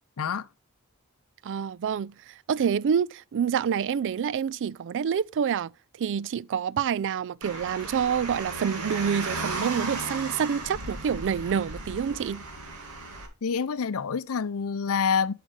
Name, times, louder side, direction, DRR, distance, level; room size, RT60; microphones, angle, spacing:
voice 1, 0.2-0.5 13.4-15.3, left 6 dB, 65° left, 0.5 m, -27 dB
voice 2, 1.4-5.7 6.0-12.4, right 7 dB, 55° right, 0.3 m, -27 dB
Car, 7.4-13.3, right 3 dB, 85° right, 2.2 m, -35 dB
8.9 x 6.6 x 3.3 m
head